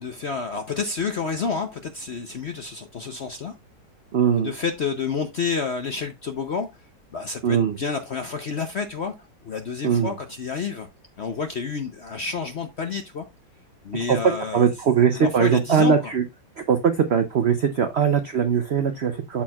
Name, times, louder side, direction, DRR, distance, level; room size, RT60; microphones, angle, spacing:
voice 1, 0.0-3.5 4.4-6.7 7.1-10.9 11.2-13.2 13.8-14.7 15.1-16.1, left 5 dB, 60° left, 0.7 m, -29 dB
voice 2, 4.1-4.5 7.4-7.8 9.8-10.1 14.1-14.2 14.5-16.2 16.6-19.4, right 7 dB, 75° right, 0.6 m, -21 dB
13.0 x 4.4 x 2.3 m
omnidirectional pair, 2.0 m